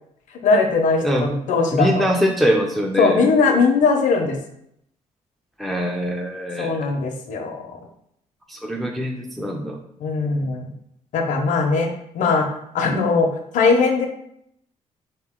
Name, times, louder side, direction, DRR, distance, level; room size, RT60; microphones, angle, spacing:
voice 1, 0.4-2.1 3.0-4.4 6.6-7.8 10.0-10.7 11.1-12.5 12.7-14.1, left 4 dB, 75° left, 4 dB, 0.7 m, -20 dB
voice 2, 1.0-1.4 1.7-3.3 5.6-6.9 8.5-9.8, equal, ahead, 1 dB, 0.4 m, -23 dB
3.9 x 2.9 x 3.6 m, 0.74 s
cardioid pair, 145°, 13 cm